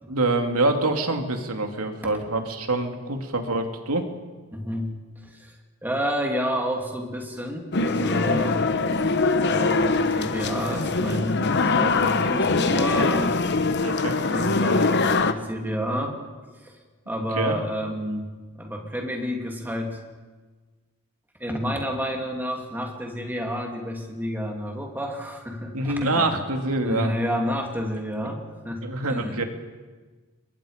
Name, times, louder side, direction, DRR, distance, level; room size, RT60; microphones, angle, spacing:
voice 1, 0.1-4.1 13.8-14.2 17.4-17.6 25.7-27.1 28.8-29.4, right 2 dB, 85° right, 5 dB, 2.5 m, -25 dB
voice 2, 4.5-4.9 5.2-5.5 5.8-8.6 9.4-13.4 14.3-16.2 16.5-16.8 17.1-18.3 18.6-20.0 21.4-26.3 26.8-29.4, equal, 10° right, 1 dB, 2.8 m, -30 dB
sound 1, 7.7-15.3, left 3 dB, 50° left, 1.0 m, -23 dB
29.5 x 22.5 x 5.2 m, 1.3 s
head